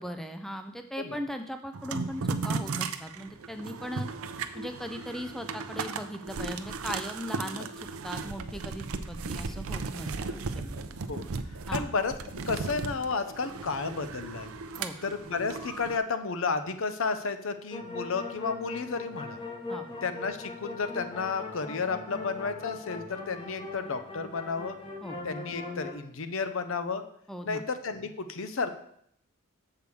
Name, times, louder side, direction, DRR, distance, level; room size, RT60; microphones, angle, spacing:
voice 1, 0.0-4.1 4.5-10.9 11.7-11.9 14.8-14.9 19.7-19.9 25.0-25.2 27.3-27.6, equal, ahead, 6 dB, 0.4 m, -38 dB
sound 1, 1.7-16.0, right 4 dB, 75° right, 0.6 m, -36 dB
voice 2, 11.7-12.1 12.5-14.5 15.0-19.4 20.0-24.8 25.2-27.0 27.4-28.7, left 4 dB, 65° left, 10 dB, 0.6 m, -32 dB
sound 2, 17.7-25.9, left 3 dB, 25° left, 1.1 m, -40 dB
6.8 x 4.7 x 6.9 m, 0.70 s
head